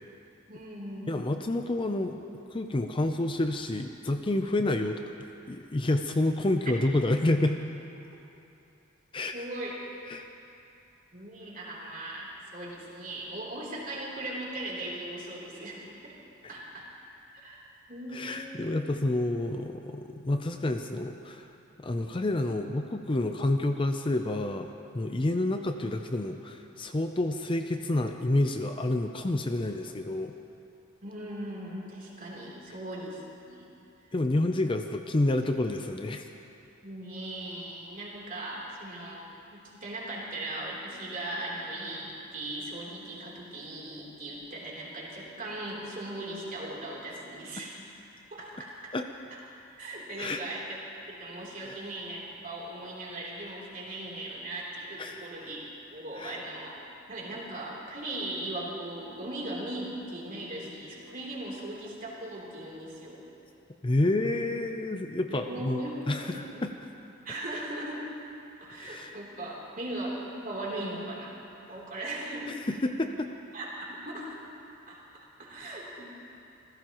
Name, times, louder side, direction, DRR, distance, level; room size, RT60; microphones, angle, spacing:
voice 1, 0.5-1.1 9.3-9.7 11.1-16.1 16.5-16.9 17.3-17.6 17.9-18.7 31.0-33.7 36.8-39.2 39.5-47.8 48.3-48.9 49.8-50.8 51.1-55.6 55.9-56.7 57.1-63.3 65.3-66.6 67.2-68.0 68.6-71.3 71.7-72.5 73.5-74.4 74.9-76.1, right 1 dB, 45° right, -4 dB, 3.3 m, -38 dB
voice 2, 1.1-2.2 2.5-5.0 5.5-7.6 9.1-9.4 10.1-10.2 18.1-21.5 21.8-30.3 34.1-36.2 48.9-49.1 50.2-50.4 51.6-51.8 55.0-55.2 56.2-56.4 63.8-66.7 68.7-69.2 72.8-73.3, left 2 dB, 25° left, 6 dB, 0.5 m, -29 dB
27.5 x 15.5 x 3.0 m, 2.8 s
head